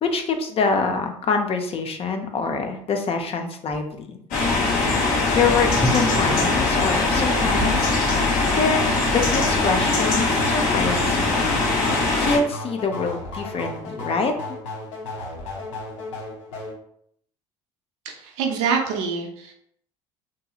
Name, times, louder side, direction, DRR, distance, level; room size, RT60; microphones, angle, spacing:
voice 1, 0.0-4.2 4.8-8.0 8.5-8.8 9.1-11.5 11.8-14.3, left 4 dB, 40° left, 5 dB, 0.5 m, -25 dB
sound 1, 4.3-12.4, left 3 dB, 60° left, 1.1 m, -21 dB
sound 2, 5.8-8.0, right 1 dB, 30° right, 0.7 m, -28 dB
sound 3, 8.4-16.8, left 1 dB, 80° left, 0.7 m, -35 dB
voice 2, 18.0-19.5, right 6 dB, 70° right, 1 dB, 0.6 m, -25 dB
2.7 x 2.7 x 2.3 m, 0.69 s
hypercardioid pair, 65°, 16 cm